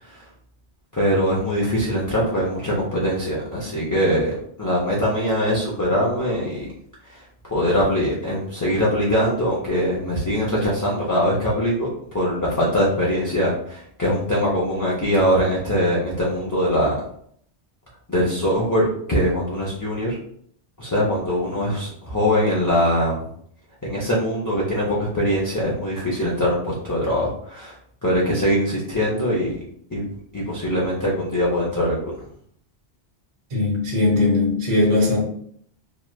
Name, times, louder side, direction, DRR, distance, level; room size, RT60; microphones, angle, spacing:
voice 1, 0.9-6.7 7.1-7.2 7.4-16.9 18.1-20.2 20.8-23.2 23.8-27.7 28.0-29.6 29.9-30.0 30.3-32.1, equal, 30° left, 0.3 m, -22 dB
voice 2, 33.5-35.2, left 2 dB, 40° right, 0.8 m, -19 dB
3.0 x 2.1 x 2.2 m
omnidirectional pair, 1.2 m